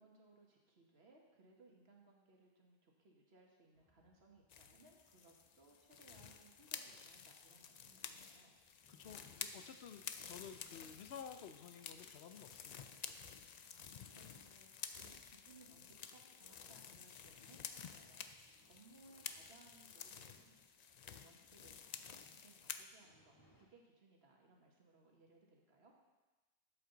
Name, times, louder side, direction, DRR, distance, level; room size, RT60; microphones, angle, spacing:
voice 1, 0.0-8.6 13.6-18.3 18.7-20.6 21.1-21.9 22.1-25.9, right 3 dB, 85° right, -1 dB, 1.8 m, -66 dB
sound 1, 3.7-23.7, equal, 20° left, 1.3 m, -74 dB
sound 2, 4.5-22.9, left 7 dB, 55° left, 0.5 m, -52 dB
voice 2, 8.9-12.9, left 7 dB, 80° left, 9 dB, 0.9 m, -53 dB
12.0 x 7.9 x 3.9 m, 1.2 s
omnidirectional pair, 1.0 m